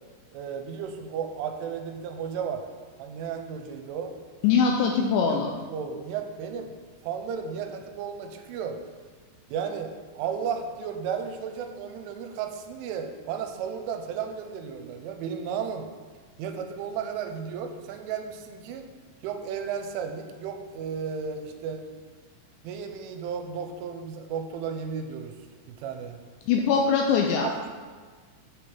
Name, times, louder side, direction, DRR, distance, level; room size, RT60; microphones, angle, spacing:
voice 1, 0.3-2.6 3.0-4.1 5.3-5.4 5.7-6.7 7.0-8.8 9.5-15.9 16.4-18.9 19.2-21.9 22.6-25.4 25.7-26.2 27.4-27.7, right 7 dB, 85° right, 6 dB, 3.2 m, -34 dB
voice 2, 4.4-5.5 26.5-27.5, left 6 dB, 90° left, 2 dB, 2.5 m, -22 dB
8.0 x 5.1 x 7.1 m, 1.5 s
omnidirectional pair, 5.6 m